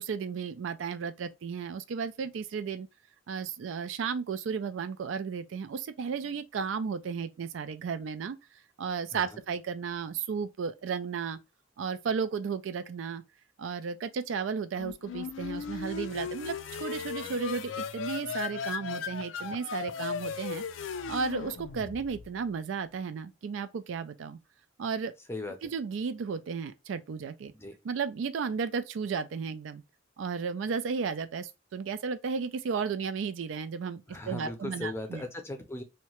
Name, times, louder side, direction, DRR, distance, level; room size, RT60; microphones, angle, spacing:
voice 1, 0.0-2.9 3.3-8.4 8.8-11.4 11.8-13.2 13.6-20.6 21.1-24.4 24.8-25.1 25.6-27.5 27.8-29.8 30.2-34.0 34.3-35.2, right 5 dB, 85° right, 0.4 m, -34 dB
sound 1, 14.8-22.4, left 6 dB, 90° left, 0.4 m, -37 dB
voice 2, 25.3-25.7 27.5-27.7 34.1-35.8, left 2 dB, 15° left, 0.5 m, -38 dB
2.8 x 2.2 x 2.8 m
head